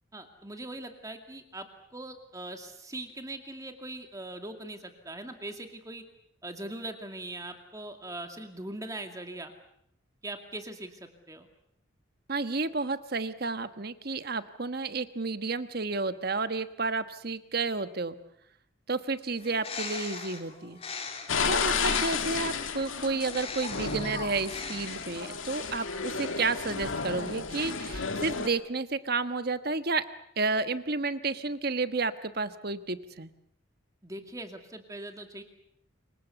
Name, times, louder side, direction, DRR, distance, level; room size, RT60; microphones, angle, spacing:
voice 1, 0.1-1.7 1.9-6.0 6.4-9.5 10.2-11.5 21.8-22.3 34.0-35.4, right 1 dB, 15° right, 5 dB, 2.3 m, -41 dB
voice 2, 12.3-18.1 18.9-20.8 21.5-30.0 30.4-33.3, right 3 dB, 50° right, 11 dB, 1.2 m, -31 dB
Bird, 19.3-22.5 23.2-25.4, left 4 dB, 30° left, 3.3 m, -40 dB
sound 1, 21.3-28.5, left 5 dB, 75° left, 2.1 m, -32 dB
28.0 x 24.5 x 7.0 m, 0.73 s
head